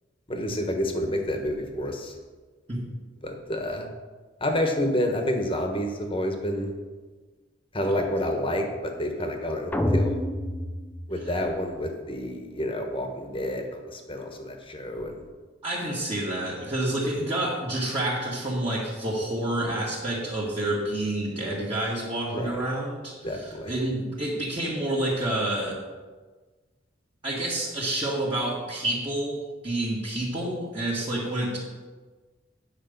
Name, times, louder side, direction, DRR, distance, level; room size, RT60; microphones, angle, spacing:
voice 1, 0.3-2.1 3.2-3.9 4.4-6.7 7.7-10.2 11.1-15.2 22.3-22.6 23.2-23.7, left 1 dB, 30° left, 4 dB, 1.2 m, -29 dB
sound 1, 9.7-11.8, left 1 dB, 10° left, 0.6 m, -28 dB
voice 2, 15.6-25.8 27.2-31.6, right 1 dB, 25° right, -9 dB, 1.8 m, -29 dB
9.5 x 5.0 x 6.6 m, 1.4 s
head